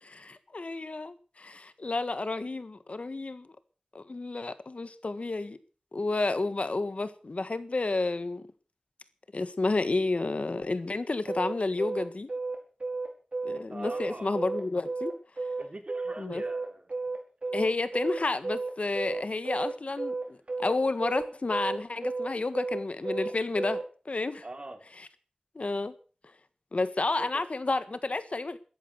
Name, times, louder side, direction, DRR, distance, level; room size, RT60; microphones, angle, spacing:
voice 1, 0.0-3.5 3.9-5.6 5.9-8.5 9.3-12.3 13.4-15.1 16.2-16.4 17.5-23.8 24.0-24.4 25.5-25.9 26.7-28.6, left 3 dB, 70° left, 1.5 m, -31 dB
sound 1, 11.3-23.9, right 3 dB, 65° right, 5.3 m, -33 dB
voice 2, 13.7-14.4 15.6-16.9 17.4-17.6 24.4-24.8 27.2-27.4, right 2 dB, 50° right, 3.4 m, -43 dB
14.0 x 13.5 x 6.9 m
wide cardioid pair, 65°, 2 cm